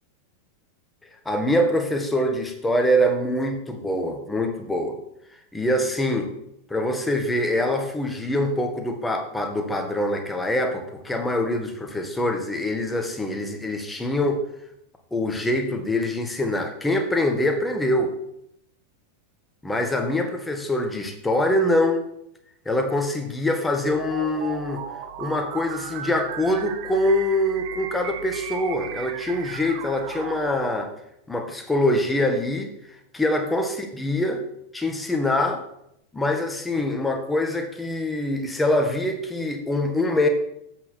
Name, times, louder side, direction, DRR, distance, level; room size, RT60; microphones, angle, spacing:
voice 1, 1.2-5.0 5.5-6.3 6.7-14.4 15.1-18.1 19.6-22.1 22.6-24.8 25.2-30.9 31.3-32.7 33.1-34.4 34.7-35.6 36.1-40.3, left 1 dB, 10° left, 4 dB, 1.3 m, -24 dB
sound 1, 23.8-30.6, right 9 dB, 45° right, 0.7 m, -36 dB
7.5 x 6.1 x 6.2 m, 0.79 s
figure-of-eight pair, 90°, 0 cm